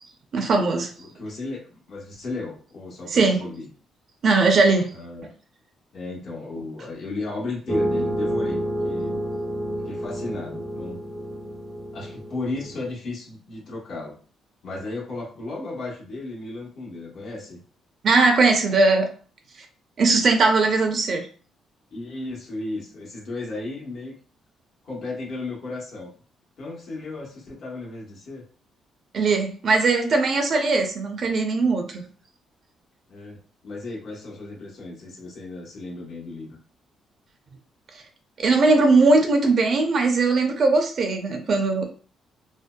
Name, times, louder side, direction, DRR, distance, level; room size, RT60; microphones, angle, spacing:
voice 1, 0.3-0.9 3.1-3.4 4.2-4.9 18.0-19.1 20.0-21.2 29.1-32.0 38.4-41.8, right 3 dB, 55° right, 4 dB, 0.5 m, -19 dB
voice 2, 1.0-3.7 4.9-5.3 5.9-9.2 9.8-11.0 11.9-14.2 14.6-17.6 21.9-24.1 24.8-26.1 26.6-28.4 33.1-36.6, left 2 dB, 65° left, -3 dB, 1.0 m, -34 dB
sound 1, 7.7-12.9, equal, ahead, 0.6 m, -29 dB
2.6 x 2.1 x 2.2 m, 0.41 s
cardioid pair, 90°, 0 cm